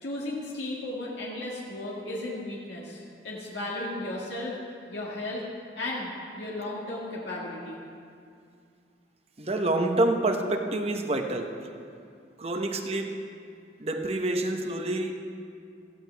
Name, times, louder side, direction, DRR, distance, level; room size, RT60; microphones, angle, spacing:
voice 1, 0.0-4.5 4.9-5.4 5.8-6.1 6.4-7.8, left 1 dB, 85° left, -5 dB, 2.0 m, -35 dB
voice 2, 9.4-11.6 12.4-13.2 13.8-15.1, right 2 dB, 35° right, 4 dB, 1.0 m, -27 dB
17.0 x 14.0 x 3.4 m, 2.4 s
head